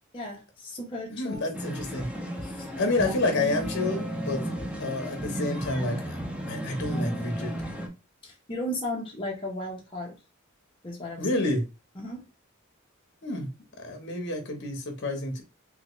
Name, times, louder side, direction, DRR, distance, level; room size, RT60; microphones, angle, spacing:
voice 1, 0.1-1.6 2.4-2.7 3.0-3.1 8.2-10.2 10.8-11.3 12.0-12.2, left 1 dB, 25° left, 0.8 m, -35 dB
voice 2, 1.1-2.1 2.8-4.4 4.8-6.2 6.5-7.6 11.2-11.6 13.2-13.5 13.8-15.4, left 2 dB, 55° left, 0.9 m, -29 dB
sound 1, 1.5-7.9, equal, 5° right, 0.5 m, -33 dB
3.6 x 2.2 x 3.1 m
head